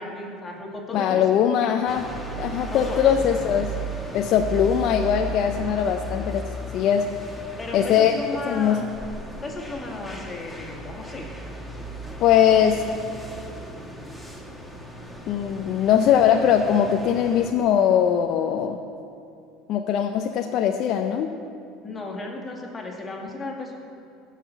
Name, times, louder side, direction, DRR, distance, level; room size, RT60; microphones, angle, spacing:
voice 1, 0.0-1.8 2.7-3.5 7.6-8.8 9.4-11.3 21.8-23.8, left 2 dB, 20° left, -1 dB, 2.2 m, -35 dB
voice 2, 0.9-2.1 2.4-3.7 4.1-7.1 7.7-8.1 8.5-8.9 12.2-12.8 15.3-18.8 19.7-21.3, left 9 dB, 50° left, 4 dB, 0.6 m, -21 dB
sound 1, 1.9-17.5, right 2 dB, ahead, 1.4 m, -36 dB
16.0 x 5.8 x 6.9 m, 2.6 s
supercardioid pair, 125°, 0 cm